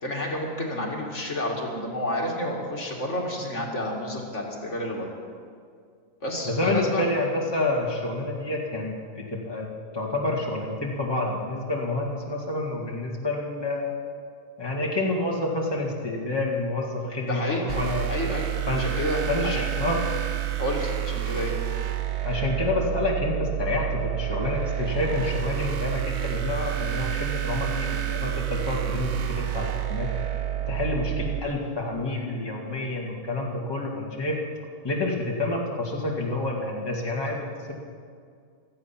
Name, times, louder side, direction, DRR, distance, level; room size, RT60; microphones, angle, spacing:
voice 1, 0.0-5.1 6.2-7.1 17.3-17.8 18.1-19.7 20.6-21.6, left 1 dB, 65° left, -1 dB, 2.6 m, -30 dB
voice 2, 6.4-9.7 9.9-13.9 14.6-18.1 18.7-18.8 19.3-20.0 22.2-30.1 30.7-34.4 34.8-37.7, left 2 dB, 20° left, -3 dB, 2.1 m, -28 dB
sound 1, 17.7-31.4, right 13 dB, 60° right, 1.1 m, -29 dB
16.5 x 14.0 x 5.9 m, 2.1 s
omnidirectional pair, 1.3 m